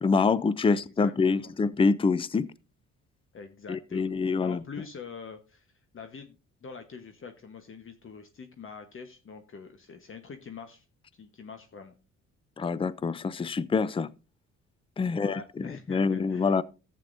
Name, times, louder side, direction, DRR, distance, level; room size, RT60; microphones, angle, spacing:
voice 1, 0.0-2.5 3.7-4.6 12.6-14.1 15.0-16.6, left 4 dB, 20° left, 0.5 m, -26 dB
voice 2, 0.6-1.5 3.3-5.7 5.9-6.4 6.6-10.8 11.2-11.9 15.0-16.6, left 5 dB, 45° left, 1.2 m, -45 dB
14.0 x 8.3 x 2.6 m
cardioid pair, 90°, 30 cm